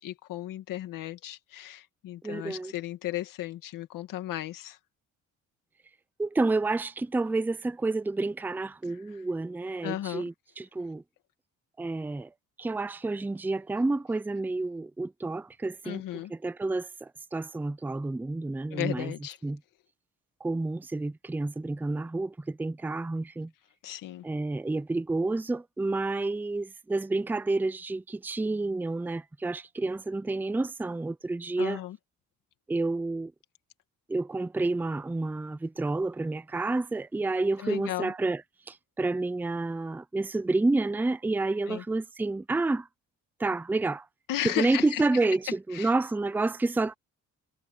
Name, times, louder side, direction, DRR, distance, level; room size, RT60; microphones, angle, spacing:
voice 1, 0.0-4.8 8.8-9.2 9.8-10.3 15.8-16.3 18.7-19.4 23.8-24.3 31.6-32.0 37.6-38.1 41.7-41.8 44.3-45.0 45.7-45.9, left 14 dB, 85° left, 2.2 m, -35 dB
voice 2, 2.2-2.7 6.2-11.0 11.8-12.3 12.6-16.0 16.3-19.1 19.4-19.6 20.4-23.5 24.2-31.8 32.7-33.3 34.1-38.4 38.7-42.9 43.4-44.0 44.4-46.9, right 2 dB, 5° right, 0.5 m, -29 dB
cardioid pair, 125°, 32 cm